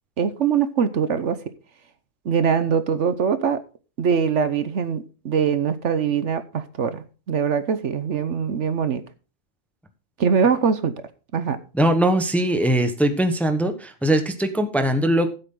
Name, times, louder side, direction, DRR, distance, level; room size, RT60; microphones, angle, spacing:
voice 1, 0.2-1.4 2.2-3.6 4.0-9.0 10.2-10.9 11.3-11.6, right 6 dB, 65° right, 1.2 m, -22 dB
voice 2, 11.7-15.3, right 1 dB, ahead, 1.0 m, -21 dB
14.5 x 7.9 x 3.8 m
omnidirectional pair, 1.4 m